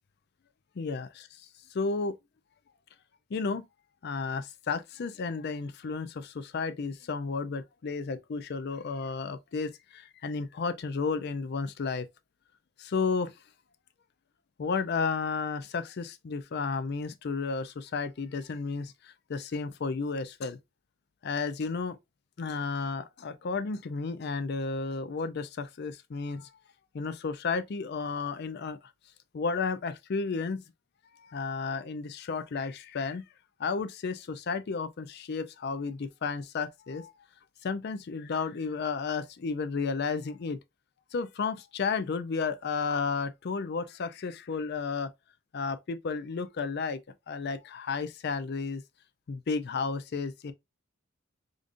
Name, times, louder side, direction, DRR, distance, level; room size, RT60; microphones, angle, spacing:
voice 1, 0.8-1.3 1.7-2.2 3.3-3.6 4.0-12.1 12.8-13.3 14.6-20.6 21.2-22.0 22.4-26.5 26.9-28.8 29.3-30.6 31.2-33.2 33.6-37.1 37.6-40.6 41.1-45.1 45.5-47.0 47.3-48.8 49.3-50.5, left 4 dB, 50° left, 0.4 m, -32 dB
5.0 x 2.5 x 2.5 m
head